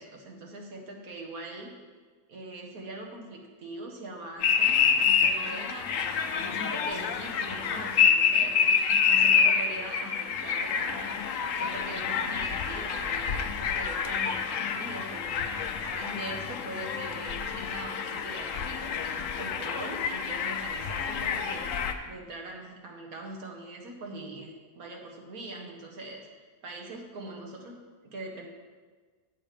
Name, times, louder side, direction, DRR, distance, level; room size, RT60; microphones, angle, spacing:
voice 1, 0.0-1.8 2.3-5.9 6.4-11.2 11.6-21.7 22.0-28.5, right 2 dB, 90° right, 1 dB, 1.8 m, -42 dB
sound 1, 4.4-21.9, left 6 dB, 70° left, 1.0 m, -27 dB
7.9 x 7.5 x 5.1 m, 1.4 s
omnidirectional pair, 1.5 m